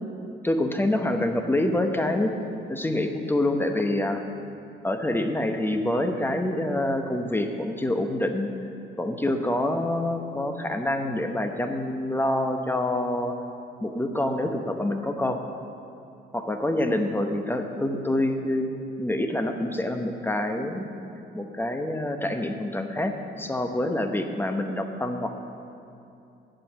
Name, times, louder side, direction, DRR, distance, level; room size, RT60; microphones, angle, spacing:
voice 1, 0.4-2.3 2.7-4.2 4.8-8.5 9.0-13.3 13.8-15.4 16.3-18.7 19.0-20.9 21.3-25.3, left 1 dB, 10° left, 5 dB, 0.9 m, -26 dB
8.5 x 7.7 x 7.3 m, 2.7 s
cardioid pair, 90°, 20 cm